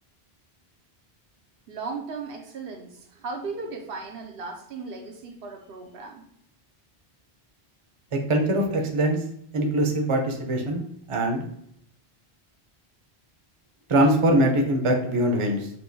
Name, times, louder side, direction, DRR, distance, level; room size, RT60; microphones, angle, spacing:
voice 1, 1.7-6.2, right 4 dB, 70° right, 3 dB, 0.8 m, -36 dB
voice 2, 8.1-9.2 9.5-10.8 11.1-11.4 13.9-15.7, right 1 dB, 35° right, 2 dB, 0.7 m, -22 dB
6.1 x 2.6 x 2.7 m, 0.70 s
omnidirectional pair, 1.0 m